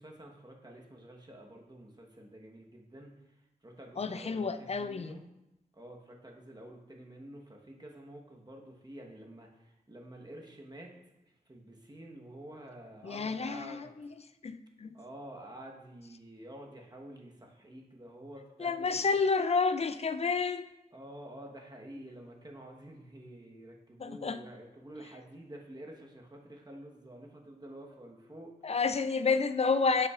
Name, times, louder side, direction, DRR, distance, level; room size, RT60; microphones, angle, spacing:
voice 1, 0.0-3.1 3.6-5.3 5.7-10.9 11.3-13.9 14.9-19.0 20.9-28.5, right 1 dB, 25° right, 0 dB, 1.2 m, -49 dB
voice 2, 4.0-5.2 13.0-14.1 14.4-15.0 18.6-20.6 24.0-24.4 28.6-30.1, left 4 dB, 40° left, 12 dB, 0.4 m, -30 dB
7.5 x 5.7 x 2.4 m, 0.94 s
cardioid pair, 50°, 16 cm